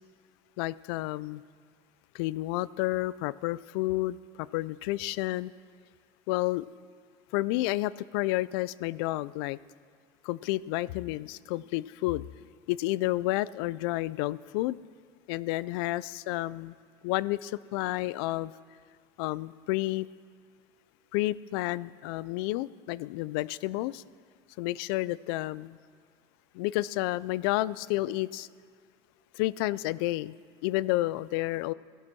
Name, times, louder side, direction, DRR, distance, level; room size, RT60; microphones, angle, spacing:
voice 1, 0.6-1.4 2.1-5.5 6.3-6.7 7.3-9.6 10.2-12.3 12.7-14.8 15.3-16.7 17.0-18.5 19.2-20.1 21.1-24.0 24.6-25.8 26.5-28.5 29.3-30.3 30.6-31.7, left 18 dB, 65° left, 20 dB, 0.4 m, -30 dB
17.5 x 12.0 x 6.1 m, 2.1 s
cardioid pair, 175°, 14 cm